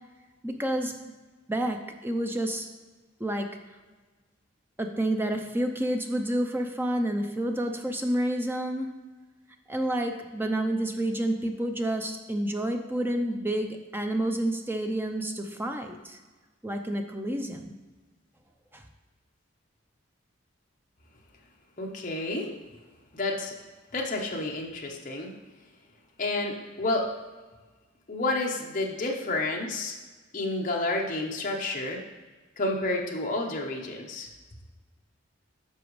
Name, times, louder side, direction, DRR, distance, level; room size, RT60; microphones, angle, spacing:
voice 1, 0.4-0.9 1.5-2.7 3.2-3.5 4.8-8.9 9.7-16.2 16.6-17.8 18.7-18.8, right 1 dB, 10° right, 5 dB, 0.5 m, -29 dB
voice 2, 21.8-22.5 23.1-23.5 23.9-25.3 26.2-27.1 28.1-29.9 30.3-32.0 32.6-34.3, left 2 dB, 40° left, -1 dB, 0.9 m, -30 dB
10.0 x 6.1 x 3.1 m, 1.3 s
head